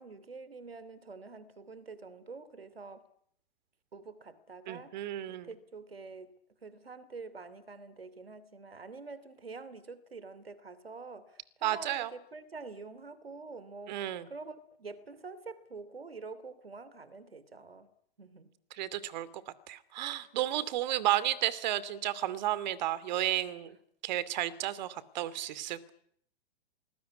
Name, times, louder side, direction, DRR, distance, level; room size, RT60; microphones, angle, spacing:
voice 1, 0.0-3.0 3.9-4.9 5.3-6.3 6.6-11.3 11.6-17.9 18.2-18.5 21.1-21.2, right 4 dB, 80° right, 2.9 m, -46 dB
voice 2, 4.7-5.5 11.6-12.1 13.9-14.3 18.7-19.4 19.7-23.8 24.0-25.9, right 13 dB, 50° right, 2.5 m, -32 dB
27.5 x 20.5 x 9.7 m
figure-of-eight pair, 110°, 29 cm